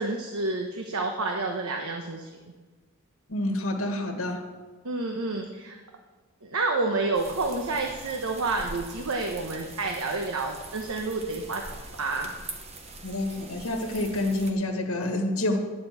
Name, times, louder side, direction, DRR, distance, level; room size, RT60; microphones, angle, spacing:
voice 1, 0.0-2.5 4.8-5.8 6.4-11.6 11.9-12.3, right 3 dB, 85° right, 3 dB, 1.1 m, -29 dB
voice 2, 3.3-4.5 13.0-15.6, left 1 dB, 75° left, 5 dB, 1.5 m, -28 dB
sound 1, 7.1-14.5, right 3 dB, 30° right, 1.0 m, -43 dB
11.0 x 7.1 x 8.0 m, 1.3 s
head